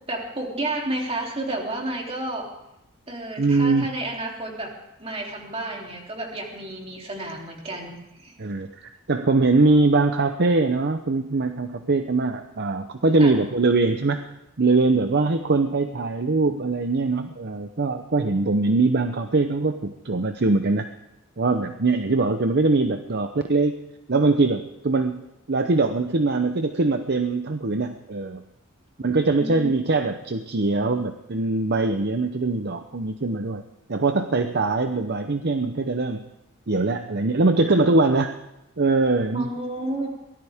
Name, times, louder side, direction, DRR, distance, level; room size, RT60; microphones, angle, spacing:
voice 1, 0.1-2.5 3.1-4.7 5.0-8.4 13.2-13.4 29.4-30.0 39.3-40.1, right 1 dB, 25° right, 0 dB, 3.2 m, -31 dB
voice 2, 3.4-3.9 8.4-14.3 14.6-21.0 21.4-23.8 24.1-25.2 25.5-28.4 29.0-33.6 33.9-36.2 36.7-38.4 38.8-39.5, right 3 dB, 50° right, 8 dB, 0.8 m, -22 dB
23.0 x 17.5 x 3.6 m, 0.88 s
head